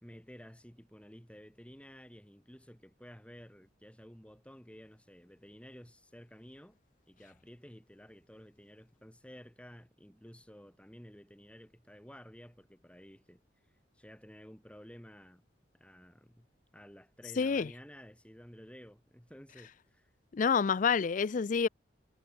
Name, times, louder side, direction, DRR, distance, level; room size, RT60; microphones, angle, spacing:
voice 1, 0.0-6.8 7.1-13.4 13.9-15.4 15.7-16.5 16.7-20.1, equal, 5° left, 3.6 m, -53 dB
voice 2, 17.4-17.7 20.3-21.7, left 6 dB, 45° left, 0.4 m, -28 dB
head